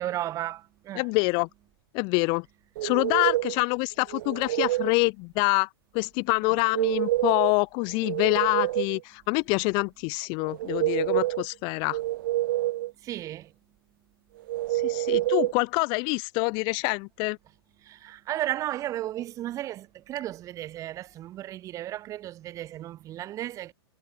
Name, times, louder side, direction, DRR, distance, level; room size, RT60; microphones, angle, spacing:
voice 1, 0.0-1.0 13.0-13.5 17.9-23.7, right 13 dB, 25° right, 2.8 m, -34 dB
voice 2, 0.9-1.5 1.9-2.4 2.8-5.7 5.9-12.0 14.7-17.4, left 32 dB, 35° left, 1.4 m, -26 dB
sound 1, 2.8-3.6 4.1-5.0 6.5-7.5 7.9-9.0 10.4-11.5 11.9-12.9 14.5-15.5, right 16 dB, 50° right, 2.1 m, -27 dB
hypercardioid pair, 150°, 13 cm